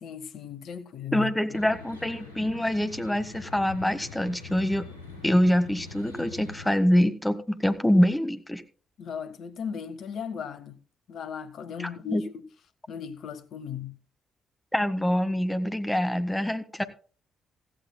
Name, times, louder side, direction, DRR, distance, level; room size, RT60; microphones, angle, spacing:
voice 1, 0.0-1.6 9.0-10.8 11.1-12.3 12.9-14.0, left 7 dB, 60° left, 1.1 m, -37 dB
voice 2, 1.1-4.9 5.2-8.6 11.8-12.2 14.7-16.8, equal, 10° left, 1.5 m, -25 dB
sound 1, 1.5-6.7, left 4 dB, 85° left, 3.4 m, -44 dB
16.5 x 14.5 x 2.2 m
figure-of-eight pair, 40°, 0 cm